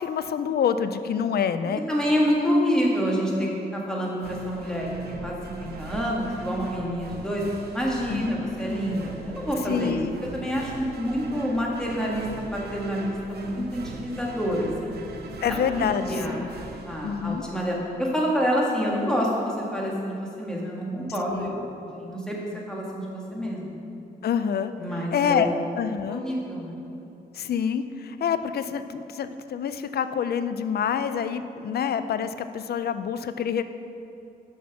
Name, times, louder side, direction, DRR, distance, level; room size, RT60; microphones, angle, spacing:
voice 1, 0.0-1.8 8.1-8.3 9.7-10.1 15.4-16.5 17.0-17.4 21.3-21.5 24.2-24.7 25.1-25.5 25.8-26.2 27.3-33.6, left 7 dB, 75° left, 11 dB, 0.4 m, -27 dB
voice 2, 1.9-7.4 7.7-10.0 10.3-12.3 12.5-15.0 15.5-15.6 16.0-16.4 16.8-22.4 22.7-23.7 24.8-25.6 26.1-26.8, equal, 5° left, -4 dB, 1.6 m, -27 dB
sound 1, 4.2-17.8, right 3 dB, 80° right, 0.7 m, -41 dB
6.3 x 5.9 x 5.9 m, 2.7 s
wide cardioid pair, 100°, 16 cm